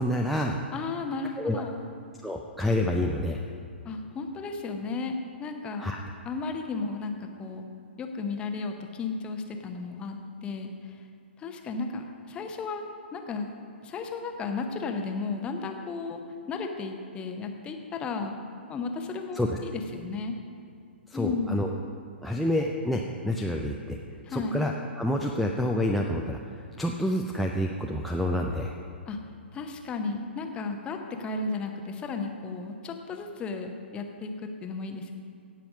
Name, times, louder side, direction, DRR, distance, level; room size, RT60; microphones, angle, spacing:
voice 1, 0.0-0.6 1.4-1.6 2.2-3.4 5.8-6.0 19.3-19.6 21.1-21.7 22.2-24.0 24.3-28.7, left 1 dB, ahead, 2 dB, 0.4 m, -28 dB
voice 2, 0.7-1.9 3.8-5.9 6.2-7.7 8.0-11.0 11.4-12.9 13.1-13.5 13.8-16.2 16.5-18.3 18.7-20.4 21.1-21.7 24.2-24.6 29.1-29.2 29.5-35.1, left 4 dB, 15° left, 5 dB, 0.8 m, -34 dB
17.0 x 5.7 x 5.4 m, 2.4 s
figure-of-eight pair, 115°, 6 cm